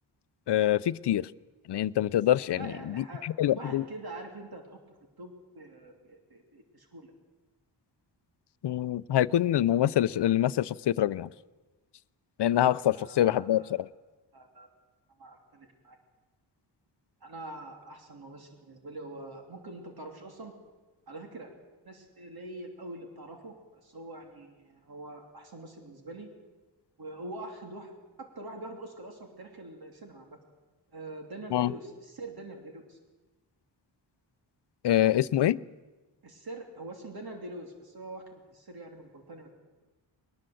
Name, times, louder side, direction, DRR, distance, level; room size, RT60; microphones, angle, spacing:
voice 1, 0.5-1.3 1.7-3.8 8.6-11.3 12.4-13.9 31.5-31.7 34.8-35.6, left 12 dB, 70° left, 17 dB, 0.6 m, -25 dB
voice 2, 2.6-3.3 3.6-7.1 12.9-13.9 14.3-14.7 15.2-16.0 17.2-20.5 21.1-21.5 21.8-26.3 27.0-27.9 28.2-30.4 30.9-33.0 36.2-39.5, right 2 dB, 55° right, 3 dB, 3.0 m, -44 dB
21.0 x 20.5 x 7.8 m, 1.2 s
wide cardioid pair, 155°, 43 cm